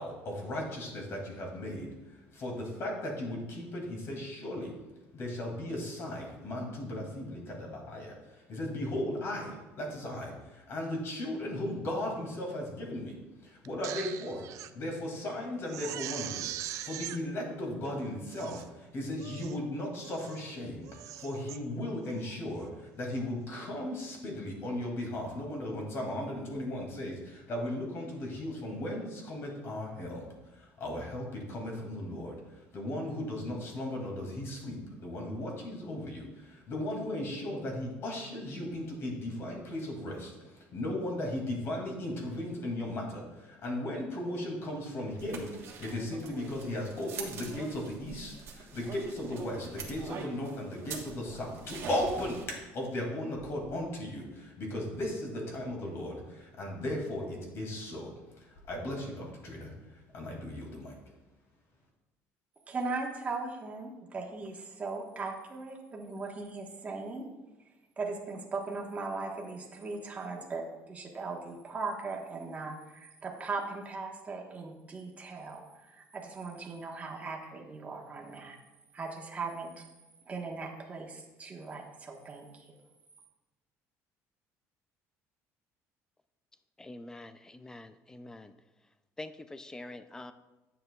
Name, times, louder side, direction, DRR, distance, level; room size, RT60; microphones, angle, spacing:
voice 1, 0.0-1.9 2.3-4.8 5.1-14.5 14.7-30.2 30.5-32.4 32.7-59.7 60.1-60.9, left 1 dB, 50° left, 0 dB, 2.3 m, -36 dB
Crying sobbing, 13.6-14.7 15.1-15.2 15.7-17.2 17.8-17.9 18.3-18.7 19.2-19.6 20.0-20.5 20.8-21.6 22.1-22.3, right 12 dB, 70° right, 0.4 m, -41 dB
sound 1, 45.2-52.5, right 5 dB, 50° right, 1.3 m, -44 dB
voice 2, 62.7-67.3 68.0-78.6 78.9-79.9 80.3-82.6, right 3 dB, 25° right, 0 dB, 1.3 m, -39 dB
voice 3, 86.8-88.5 89.2-90.3, left 2 dB, 10° left, 11 dB, 0.4 m, -45 dB
9.9 x 7.5 x 2.3 m, 1.1 s
cardioid pair, 135°, 6 cm